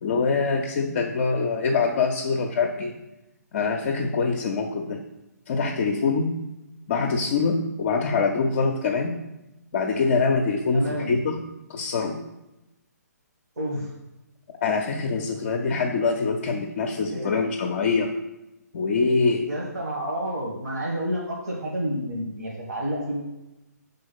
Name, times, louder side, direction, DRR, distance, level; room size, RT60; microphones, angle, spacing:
voice 1, 0.0-2.9 3.5-5.0 5.5-6.3 6.9-9.2 9.7-11.4 11.7-12.2 14.6-18.1 18.7-19.5, left 4 dB, 40° left, 3 dB, 0.5 m, -24 dB
voice 2, 10.7-11.1 13.6-13.9 17.1-17.4 19.4-23.2, equal, 65° right, -3 dB, 1.4 m, -29 dB
4.7 x 3.8 x 5.6 m, 0.95 s
figure-of-eight pair, 135°, 9 cm